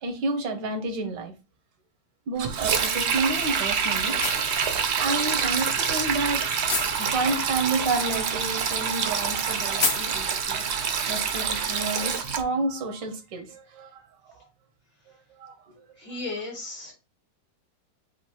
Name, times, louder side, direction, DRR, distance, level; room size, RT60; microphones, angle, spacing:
voice 1, 0.0-1.3 2.3-4.2 5.0-6.5 7.0-10.6 11.1-14.3 15.4-15.9, right 3 dB, 85° right, 6 dB, 1.7 m, -30 dB
sound 1, 2.4-11.0, left 5 dB, 50° left, 0.8 m, -36 dB
Sink (filling or washing), 2.4-12.4, right 6 dB, 65° right, 0.7 m, -26 dB
voice 2, 16.0-16.9, left 3 dB, 80° left, -6 dB, 3.5 m, -35 dB
7.2 x 2.6 x 2.9 m, 0.28 s
omnidirectional pair, 1.9 m